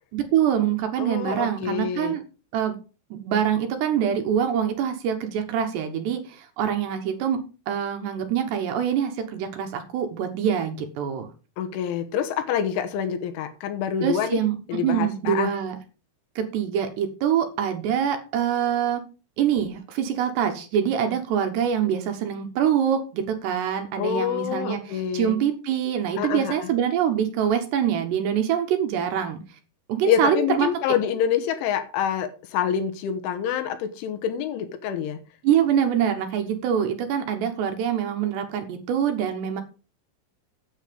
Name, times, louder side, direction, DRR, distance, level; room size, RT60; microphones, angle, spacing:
voice 1, 0.1-2.2 2.5-2.8 3.1-11.3 14.0-14.6 14.8-15.8 16.4-19.0 19.4-29.4 29.9-30.7 35.4-39.6, right 9 dB, 70° right, 3.0 m, -25 dB
voice 2, 1.0-2.2 11.6-14.4 14.7-15.5 24.0-25.4 26.2-26.7 30.0-35.2, left 9 dB, 80° left, 3.5 m, -26 dB
9.2 x 8.0 x 5.2 m
omnidirectional pair, 5.7 m